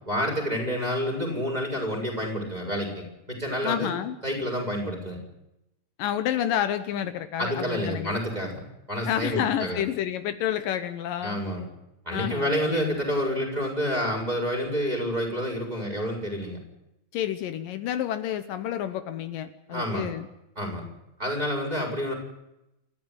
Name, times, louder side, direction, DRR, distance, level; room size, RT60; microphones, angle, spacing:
voice 1, 0.1-3.9 4.2-5.2 7.4-8.6 8.9-9.8 11.2-11.6 12.1-16.6 19.7-20.1 20.6-20.9 21.2-22.1, equal, 10° right, 1 dB, 7.0 m, -29 dB
voice 2, 3.6-4.2 6.0-8.2 9.1-11.4 12.1-13.0 17.1-20.3, left 10 dB, 75° left, 10 dB, 2.6 m, -29 dB
28.5 x 15.0 x 9.6 m, 0.89 s
omnidirectional pair, 4.0 m